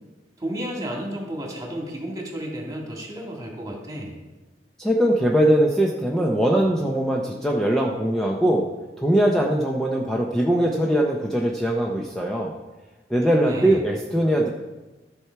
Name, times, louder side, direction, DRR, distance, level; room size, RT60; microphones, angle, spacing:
voice 1, 0.4-4.2 13.3-13.8, equal, 20° right, 0 dB, 2.1 m, -32 dB
voice 2, 4.8-8.7 9.0-12.5 13.1-14.5, right 1 dB, 5° left, -2 dB, 0.8 m, -21 dB
13.5 x 6.0 x 4.6 m, 1.1 s
head